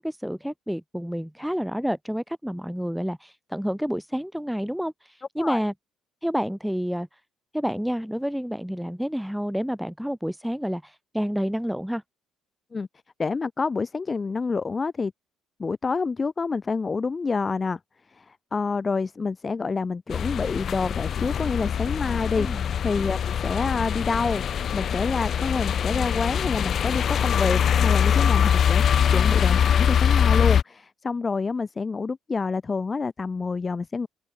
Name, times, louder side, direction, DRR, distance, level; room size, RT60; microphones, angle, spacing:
voice 1, 0.0-5.7 6.2-7.2 7.5-12.0 22.4-22.6, equal, ahead, 3.1 m, -29 dB
voice 2, 13.2-15.1 15.6-17.8 18.1-24.4 24.7-34.1, left 4 dB, 30° left, 2.8 m, -28 dB
sound 1, 20.1-30.6, left 8 dB, 50° left, 0.5 m, -23 dB
open air
figure-of-eight pair, 50°, 0 cm